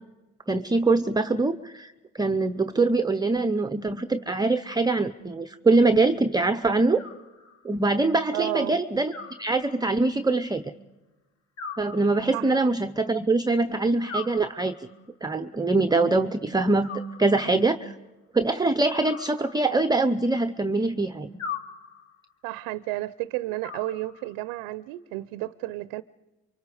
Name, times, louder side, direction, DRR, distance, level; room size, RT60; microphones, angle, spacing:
voice 1, 0.5-7.0 7.6-9.1 9.4-10.6 11.8-14.7 15.2-16.9 17.2-17.9 18.3-21.3, right 3 dB, 10° right, 0.7 m, -23 dB
Animal, 7.0-7.9 9.1-10.1 11.6-12.7 14.1-15.1 16.8-17.7 19.0-20.1 21.4-22.3 23.6-24.5, left 5 dB, 50° left, 2.4 m, -40 dB
voice 2, 8.3-8.8 12.3-12.6 22.4-26.0, right 17 dB, 85° right, 0.6 m, -32 dB
28.5 x 24.0 x 5.0 m
supercardioid pair, 80°, 34 cm